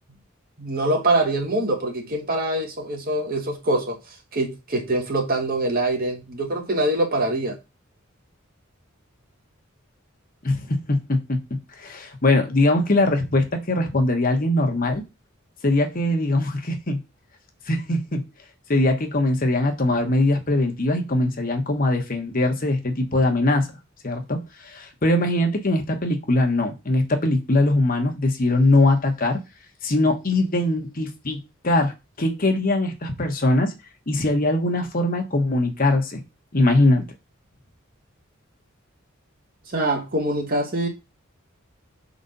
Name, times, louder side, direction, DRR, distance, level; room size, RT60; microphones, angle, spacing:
voice 1, 0.6-4.0 4.3-7.6 39.7-40.9, right 1 dB, 45° right, 1.6 m, -24 dB
voice 2, 10.4-11.4 11.8-15.0 15.6-17.0 17.7-18.3 18.7-23.7 24.0-29.4 29.8-33.7 34.1-36.2 36.5-37.0, left 2 dB, 40° left, 1.2 m, -21 dB
5.1 x 4.1 x 5.3 m
head